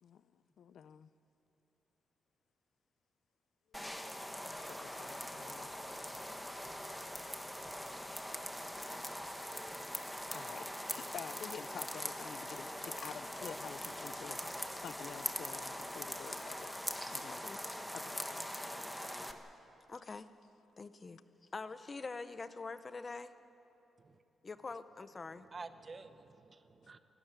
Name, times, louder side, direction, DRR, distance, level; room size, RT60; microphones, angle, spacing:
voice 1, 0.0-1.1 4.5-5.8 10.3-10.6 10.9-14.4 14.7-16.7 17.1-17.4 17.9-18.4, left 8 dB, 65° left, 0.5 m, -49 dB
sound 1, 3.7-19.3, equal, 5° left, 1.1 m, -42 dB
voice 2, 17.3-17.6 19.9-20.3 20.8-21.2 21.5-23.3 24.4-25.5, left 4 dB, 30° left, 0.7 m, -44 dB
voice 3, 25.2-27.0, right 4 dB, 30° right, 0.9 m, -50 dB
28.0 x 12.5 x 9.1 m
wide cardioid pair, 150°, 0 cm